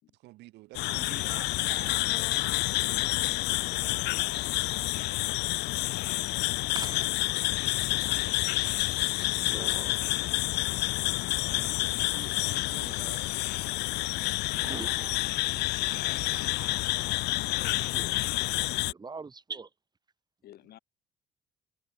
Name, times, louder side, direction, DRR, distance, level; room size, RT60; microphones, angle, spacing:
voice 1, 0.1-2.7 3.1-4.5 5.9-6.6 11.5-13.3, right 19 dB, 85° right, 4.7 m, -50 dB
sound 1, 0.7-18.9, left 20 dB, 85° left, 0.7 m, -29 dB
voice 2, 6.7-7.1 9.3-10.4 14.6-18.1 18.5-19.7, right 4 dB, 25° right, 3.9 m, -45 dB
voice 3, 15.9-16.4 20.4-20.8, left 13 dB, 70° left, 5.6 m, -49 dB
cardioid pair, 110°, 17 cm